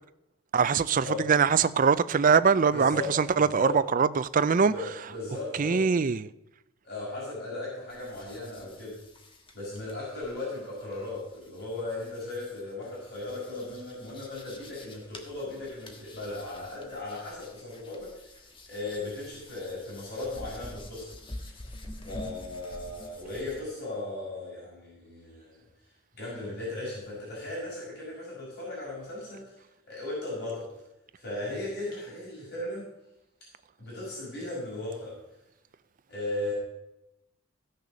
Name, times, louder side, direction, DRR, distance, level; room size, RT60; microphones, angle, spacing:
voice 1, 0.5-4.7 5.6-6.3, right 5 dB, 40° right, 0.4 m, -23 dB
voice 2, 2.7-3.1 3.4-3.7 4.6-5.8 6.8-9.0 9.5-18.4 18.7-21.1 22.1-25.6 26.1-29.5 29.9-30.7 31.2-32.9 33.8-35.2 36.1-36.5, left 2 dB, 50° left, 5.2 m, -37 dB
sound 1, 7.9-23.6, left 1 dB, 25° left, 1.5 m, -48 dB
15.0 x 6.7 x 6.2 m
head